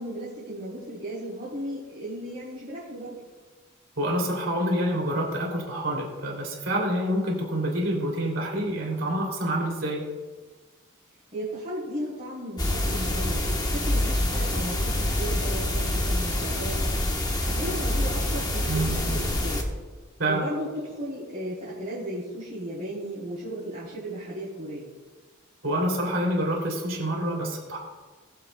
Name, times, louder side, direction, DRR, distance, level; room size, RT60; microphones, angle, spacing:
voice 1, 0.0-3.1 11.3-16.8 17.5-19.7 20.3-24.9, right 1 dB, 30° right, -11 dB, 3.4 m, -35 dB
voice 2, 4.0-10.0 18.7-19.0 20.2-20.5 25.6-27.8, right 1 dB, 70° right, -1 dB, 2.8 m, -27 dB
sound 1, 12.6-19.6, left 1 dB, 20° left, 1.0 m, -26 dB
21.0 x 7.8 x 2.2 m, 1.3 s
head